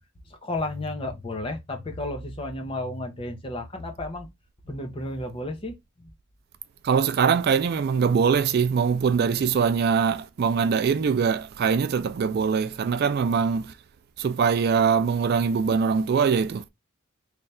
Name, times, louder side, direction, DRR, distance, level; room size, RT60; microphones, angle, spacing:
voice 1, 0.4-4.3 4.7-6.1, left 2 dB, 25° left, 0.7 m, -32 dB
voice 2, 6.8-13.7 14.2-16.6, right 6 dB, 45° right, 0.3 m, -22 dB
3.3 x 2.4 x 4.1 m
head